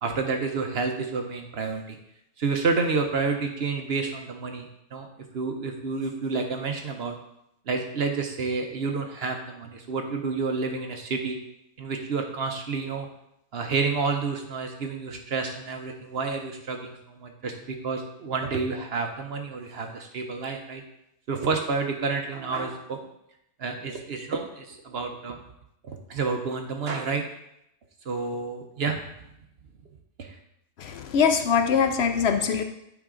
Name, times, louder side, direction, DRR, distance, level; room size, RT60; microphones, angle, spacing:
voice 1, 0.0-2.0 2.4-5.1 5.3-7.1 7.7-11.4 11.8-13.1 13.5-20.8 21.3-23.0 23.6-25.4 25.8-27.2 28.1-29.0 30.2-30.4, right 4 dB, 55° right, 4 dB, 0.8 m, -29 dB
voice 2, 30.8-32.6, left 6 dB, 65° left, 6 dB, 0.6 m, -23 dB
9.2 x 4.6 x 3.7 m, 0.81 s
omnidirectional pair, 1.5 m